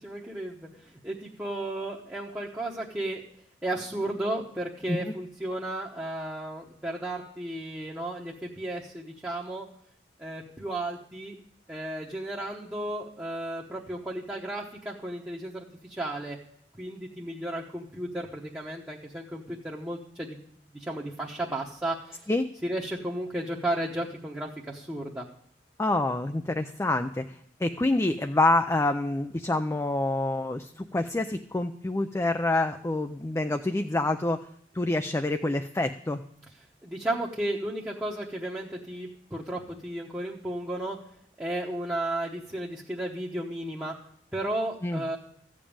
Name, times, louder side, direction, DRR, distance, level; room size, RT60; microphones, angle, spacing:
voice 1, 0.0-3.2 3.6-9.7 10.2-11.4 11.7-16.4 16.8-20.4 20.7-22.3 22.6-25.2 36.8-41.0 41.4-43.9 44.3-45.2, right 1 dB, 10° right, -4 dB, 1.0 m, -34 dB
voice 2, 25.8-34.4 34.7-36.2 44.8-45.0, left 2 dB, 15° left, 7 dB, 0.4 m, -27 dB
14.0 x 5.3 x 8.7 m, 0.67 s
head